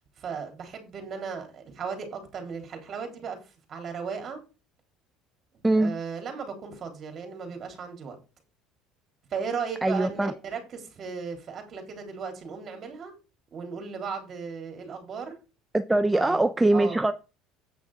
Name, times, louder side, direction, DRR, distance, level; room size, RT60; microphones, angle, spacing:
voice 1, 0.2-3.4 3.7-4.4 5.7-8.2 9.3-13.1 13.5-15.4 16.1-16.4 16.7-17.0, right 6 dB, 40° right, 3.5 m, -36 dB
voice 2, 9.8-10.3 15.7-17.1, right 2 dB, 10° right, 0.5 m, -22 dB
8.7 x 6.3 x 4.9 m
cardioid pair, 125°, 0 cm